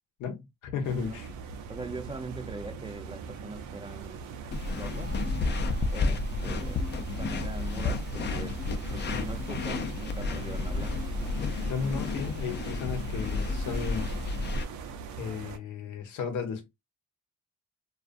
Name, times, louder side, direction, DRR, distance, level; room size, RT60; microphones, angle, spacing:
voice 1, 0.2-1.3 11.7-14.1 15.2-16.7, left 6 dB, 80° left, 0.8 m, -34 dB
sound 1, 0.8-15.6, right 5 dB, 80° right, 0.6 m, -41 dB
voice 2, 1.7-4.3 4.8-5.1 5.9-6.8 7.2-8.6 8.9-11.0, right 3 dB, 15° right, 0.4 m, -41 dB
sound 2, 4.5-14.6, left 3 dB, 35° left, 0.5 m, -31 dB
sound 3, 4.9-9.7, right 1 dB, 35° right, 0.8 m, -55 dB
2.5 x 2.4 x 2.4 m
cardioid pair, 90°, 30 cm